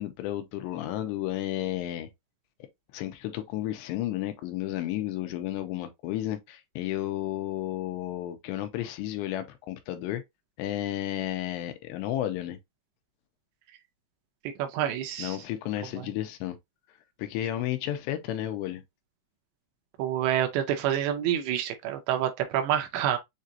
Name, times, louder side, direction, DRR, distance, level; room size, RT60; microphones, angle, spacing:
voice 1, 0.0-2.1 2.9-10.2 10.6-12.6 15.2-16.6 17.2-18.8, left 13 dB, 90° left, 2.9 m, -32 dB
voice 2, 14.6-15.4 16.0-16.1 20.0-23.2, right 10 dB, 85° right, 3.0 m, -27 dB
7.4 x 2.5 x 2.7 m
omnidirectional pair, 5.1 m